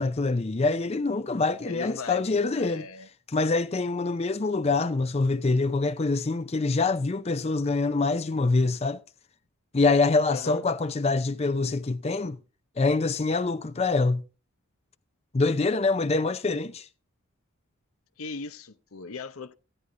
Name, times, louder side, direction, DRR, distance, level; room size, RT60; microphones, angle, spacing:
voice 1, 0.0-2.9 3.3-9.0 9.7-12.4 12.8-14.2 15.3-16.9, left 3 dB, 30° left, 0.5 m, -25 dB
voice 2, 1.7-3.1 10.3-10.6 18.2-19.6, left 5 dB, 75° left, 0.8 m, -38 dB
15.0 x 9.9 x 3.7 m
head